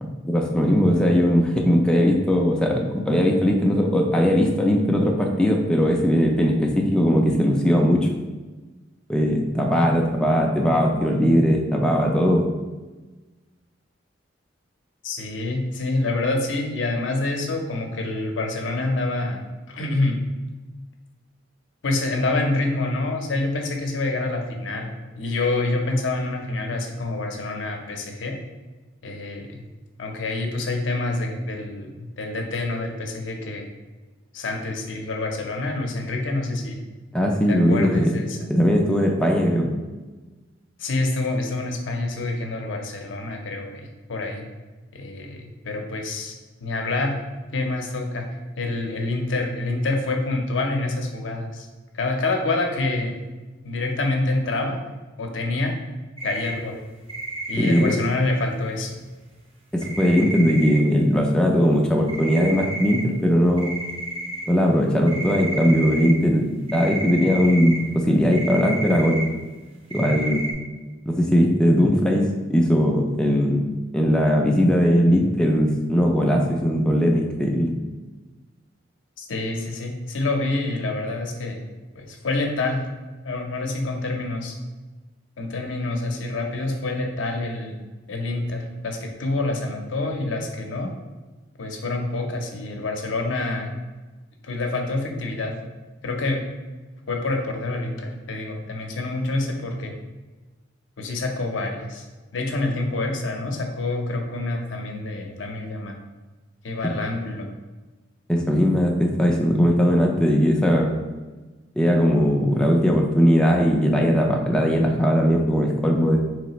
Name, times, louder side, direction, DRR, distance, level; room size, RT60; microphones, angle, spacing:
voice 1, 0.0-8.1 9.1-12.4 37.1-38.1 38.5-39.7 57.6-57.9 59.7-63.7 64.5-69.2 69.9-70.5 71.1-73.7 73.9-77.7 108.3-111.0 111.8-116.2, equal, 5° left, 0 dB, 0.3 m, -19 dB
voice 2, 15.0-19.4 19.7-20.2 21.8-24.9 25.2-28.4 29.0-29.7 30.0-33.7 34.3-36.8 37.5-38.4 40.8-44.4 44.9-46.3 46.6-47.2 47.5-48.3 48.6-51.7 51.9-53.3 53.6-54.8 55.2-55.8 56.2-56.8 57.5-58.9 79.2-81.6 82.0-82.8 83.2-84.5 85.4-87.8 88.1-90.9 91.6-93.8 94.4-95.5 96.0-96.4 97.1-99.9 101.0-102.0 102.3-106.0 106.6-107.5, left 2 dB, 75° left, 2 dB, 0.6 m, -27 dB
sound 1, 56.2-56.5 57.1-57.9 59.8-60.8 62.1-63.0 63.3-63.4 63.6-64.4 65.1-66.1 66.7-67.8 68.3-69.2 69.9-70.5, right 1 dB, 30° right, 0.7 m, -31 dB
4.0 x 3.2 x 2.9 m, 1.2 s
head